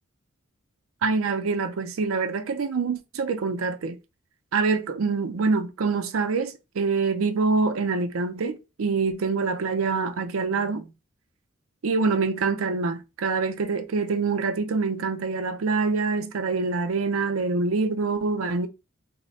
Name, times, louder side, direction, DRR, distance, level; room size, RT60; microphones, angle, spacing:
voice 1, 1.0-4.0 4.5-10.9 11.8-18.7, right 4 dB, 80° right, 0.5 m, -25 dB
3.2 x 2.1 x 4.0 m
head